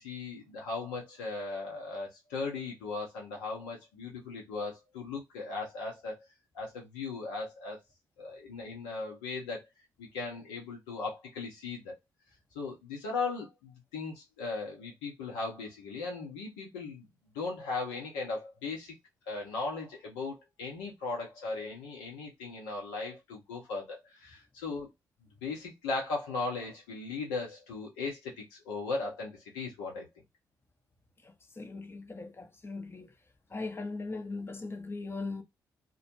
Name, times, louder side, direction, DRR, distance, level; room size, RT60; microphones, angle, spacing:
voice 1, 0.0-6.2 6.5-7.8 8.2-9.6 10.0-11.9 12.5-17.1 17.3-18.9 19.3-24.9 25.4-30.1, left 3 dB, 75° left, 0.7 m, -37 dB
voice 2, 31.2-33.1 33.5-35.4, left 3 dB, 25° left, 0.6 m, -39 dB
2.2 x 2.1 x 2.9 m
figure-of-eight pair, 40°, 10 cm